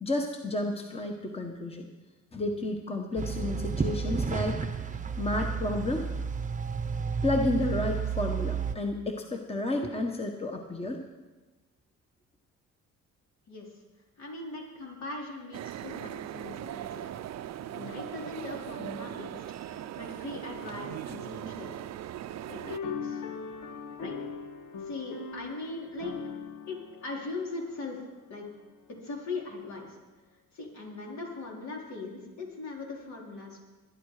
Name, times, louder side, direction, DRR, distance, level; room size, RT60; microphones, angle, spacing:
voice 1, 0.0-1.9 2.3-4.7 5.2-6.1 7.2-11.0, left 2 dB, 20° left, 3 dB, 1.4 m, -31 dB
sound 1, 3.2-8.8, right 6 dB, 25° right, 0.9 m, -31 dB
voice 2, 13.5-13.8 14.2-17.1 17.7-21.7 22.5-23.2 24.0-24.2 24.7-26.1 26.7-28.0 28.3-28.5 29.0-30.0 30.5-33.6, left 3 dB, 65° left, -2 dB, 4.3 m, -40 dB
sound 2, 15.5-22.8, right 11 dB, 60° right, 0.6 m, -39 dB
sound 3, 22.7-28.2, left 5 dB, 90° left, 1.6 m, -40 dB
21.0 x 10.5 x 5.0 m, 1.2 s
cardioid pair, 90°, 30 cm